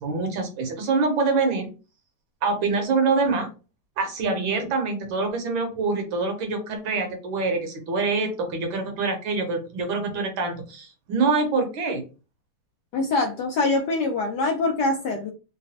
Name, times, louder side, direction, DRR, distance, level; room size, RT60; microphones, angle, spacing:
voice 1, 0.0-1.7 2.4-3.5 4.0-12.0, right 4 dB, 70° right, 5 dB, 1.5 m, -25 dB
voice 2, 12.9-15.3, left 3 dB, 75° left, 2 dB, 1.0 m, -24 dB
3.9 x 2.2 x 2.7 m, 0.32 s
omnidirectional pair, 2.3 m